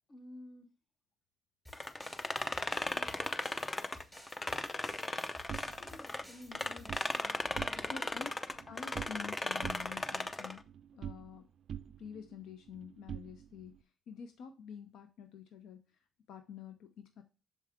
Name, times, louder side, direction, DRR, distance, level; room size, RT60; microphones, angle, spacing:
voice 1, 0.1-0.7 5.8-8.3, left 2 dB, 45° left, 8 dB, 1.4 m, -53 dB
sound 1, 1.7-6.2 6.5-10.6, left 2 dB, 20° left, 0.6 m, -37 dB
sound 2, 1.7-7.3, left 1 dB, ahead, 3.4 m, -56 dB
sound 3, 5.5-7.1 7.4-8.1 8.4-9.3 9.6-11.4 11.7-13.8, right 9 dB, 65° right, 0.3 m, -46 dB
voice 2, 7.9-8.3 8.7-10.7 10.9-11.5 12.0-15.8 16.3-17.2, left 7 dB, 80° left, 7 dB, 0.7 m, -48 dB
6.9 x 4.8 x 3.5 m, 0.33 s
cardioid pair, 90°, 0 cm